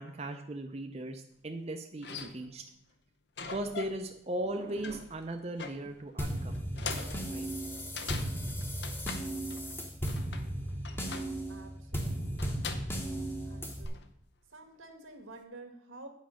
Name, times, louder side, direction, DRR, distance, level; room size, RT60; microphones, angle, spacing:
voice 1, 0.0-2.6 3.5-6.5 7.3-7.5 12.0-12.2, right 1 dB, 30° right, 4 dB, 0.5 m, -38 dB
sound 1, 1.5-1.6 2.0-2.7 3.4-4.1 4.4-9.8 10.1-11.5 12.4-13.0 13.7-14.2, left 5 dB, 55° left, 0.7 m, -43 dB
sound 2, 6.2-13.9, right 1 dB, 10° left, 0.9 m, -36 dB
voice 2, 11.5-12.7 13.4-14.0 14.5-16.1, right 2 dB, 90° right, 5 dB, 1.6 m, -50 dB
8.4 x 5.2 x 6.3 m, 0.75 s
head